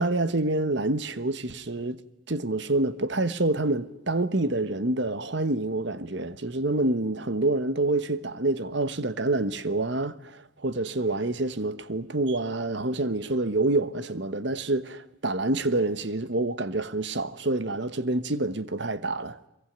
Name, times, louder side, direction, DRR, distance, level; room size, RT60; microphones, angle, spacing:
voice 1, 0.0-2.0 2.3-19.4, right 2 dB, 60° right, 1.2 m, -27 dB
23.5 x 22.5 x 9.3 m
head